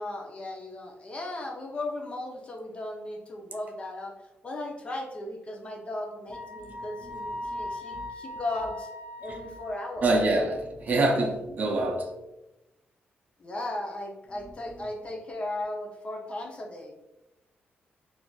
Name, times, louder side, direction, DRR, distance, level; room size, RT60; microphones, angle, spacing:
voice 1, 0.0-4.1 4.4-8.9 9.2-10.1 13.4-16.9, left 2 dB, 30° left, 0.5 m, -36 dB
Wind instrument woodwind instrument, 6.3-10.2, left 1 dB, 10° left, 1.0 m, -39 dB
voice 2, 10.0-12.1, right 2 dB, 45° right, 0.4 m, -26 dB
3.7 x 2.4 x 2.3 m
wide cardioid pair, 150°, 4 cm